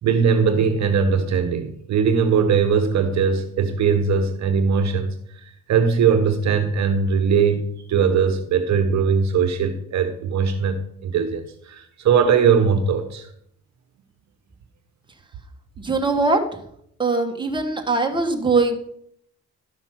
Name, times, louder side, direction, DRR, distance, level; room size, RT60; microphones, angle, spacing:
voice 1, 0.0-5.1 5.7-13.3, right 6 dB, 65° right, 8 dB, 1.2 m, -20 dB
voice 2, 15.8-16.4 17.0-18.7, right 3 dB, 15° right, 3 dB, 2.0 m, -21 dB
12.5 x 5.9 x 5.9 m, 0.68 s
cardioid pair, 90°, 30 cm